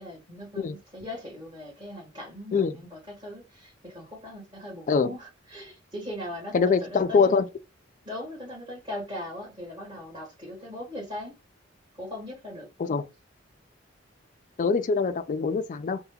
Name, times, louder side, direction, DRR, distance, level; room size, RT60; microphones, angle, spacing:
voice 1, 0.0-7.4 8.0-11.4 11.9-12.7, left 1 dB, 25° right, 1.6 m, -39 dB
voice 2, 6.5-7.5 12.8-13.1 14.6-16.0, left 5 dB, 40° left, 0.3 m, -23 dB
2.8 x 2.2 x 3.4 m
head